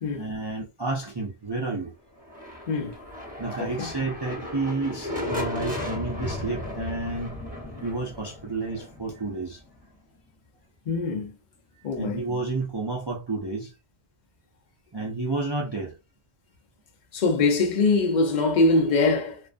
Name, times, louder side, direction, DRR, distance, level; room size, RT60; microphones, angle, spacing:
voice 1, 0.2-1.9 3.4-7.4 7.8-9.6 12.0-13.7 14.9-16.0, right 3 dB, 40° right, 0.3 m, -30 dB
sound 1, 2.2-9.9, left 1 dB, 10° right, 0.8 m, -35 dB
voice 2, 2.7-3.0 3.6-3.9 10.9-11.3 11.8-12.2 17.1-19.4, left 3 dB, 50° left, 0.6 m, -23 dB
2.4 x 2.1 x 2.4 m
omnidirectional pair, 1.1 m